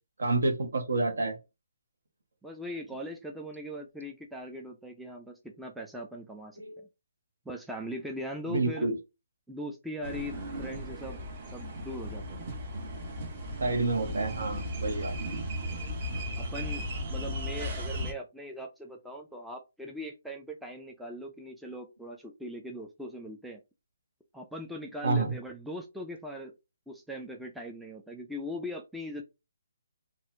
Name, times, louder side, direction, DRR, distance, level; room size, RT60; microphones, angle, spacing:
voice 1, 0.2-1.4 6.6-6.8 8.5-9.0 13.6-15.2 18.0-18.1 25.0-25.3, right 3 dB, 70° right, 4 dB, 1.0 m, -29 dB
voice 2, 2.4-6.9 7.5-8.9 9.5-11.2 11.5-12.4 14.8-15.0 16.4-23.6 24.3-26.5 26.9-29.2, equal, ahead, 1 dB, 0.3 m, -40 dB
sound 1, 10.0-18.1, equal, 35° right, 0.7 m, -36 dB
2.7 x 2.4 x 3.2 m, 0.26 s
hypercardioid pair, 155°, 0 cm